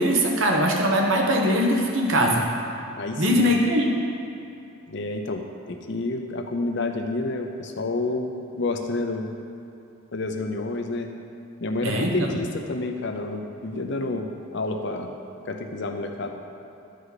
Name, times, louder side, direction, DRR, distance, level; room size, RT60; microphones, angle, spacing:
voice 1, 0.0-2.4 3.2-3.9 11.8-12.1, equal, 65° right, 0 dB, 1.1 m, -21 dB
voice 2, 3.0-3.6 4.9-9.3 10.1-11.1 11.6-15.1 15.5-16.3, left 2 dB, 55° left, 4 dB, 0.7 m, -29 dB
12.5 x 5.0 x 4.1 m, 2.7 s
head